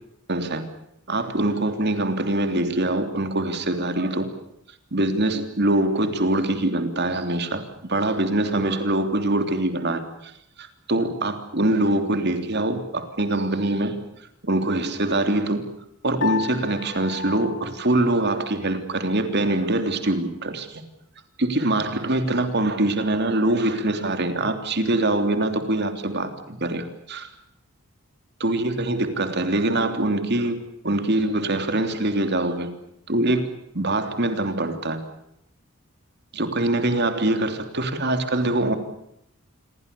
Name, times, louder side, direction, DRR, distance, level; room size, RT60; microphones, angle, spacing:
voice 1, 0.3-0.6 1.1-4.3 4.9-10.3 10.6-14.0 14.4-15.6 16.0-20.8 21.4-27.3 28.4-30.6 30.8-32.7 33.1-35.0 36.3-38.8, right 1 dB, 50° right, 8 dB, 3.3 m, -24 dB
Piano, 16.2-18.7, left 6 dB, 55° left, 2.3 m, -33 dB
28.0 x 22.5 x 7.0 m, 0.80 s
head